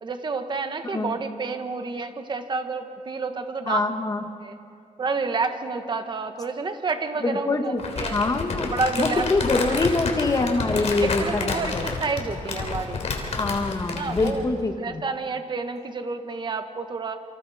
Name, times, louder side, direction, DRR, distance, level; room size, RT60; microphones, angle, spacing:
voice 1, 0.0-3.8 4.4-4.5 5.0-8.2 8.7-9.3 9.7-9.8 11.0-13.0 13.9-14.4 14.8-17.2, right 4 dB, 35° right, 7 dB, 1.3 m, -29 dB
voice 2, 3.7-4.2 7.2-7.8 8.1-8.7 9.0-11.8 13.4-15.0, left 3 dB, 25° left, 5 dB, 1.6 m, -24 dB
Crumpling crinkling, 7.8-14.4, left 4 dB, 55° left, 3.3 m, -30 dB
29.0 x 25.5 x 4.2 m, 2.5 s
wide cardioid pair, 155°, 13 cm